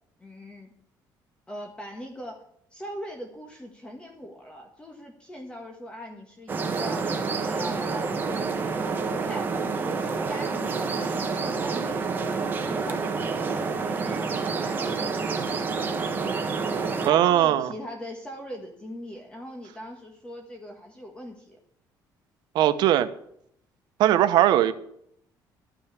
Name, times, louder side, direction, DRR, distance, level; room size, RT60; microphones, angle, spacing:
voice 1, 0.2-0.7 1.5-2.4 2.7-7.2 7.4-12.3 12.6-15.4 16.6-21.6, equal, 15° left, 2 dB, 1.6 m, -41 dB
sound 1, 6.5-17.1, right 4 dB, 25° right, 1.4 m, -28 dB
voice 2, 17.0-17.7 22.5-23.1 24.0-24.7, right 12 dB, 75° right, 12 dB, 1.0 m, -19 dB
13.0 x 6.4 x 8.2 m, 0.70 s
cardioid pair, 160°, 8 cm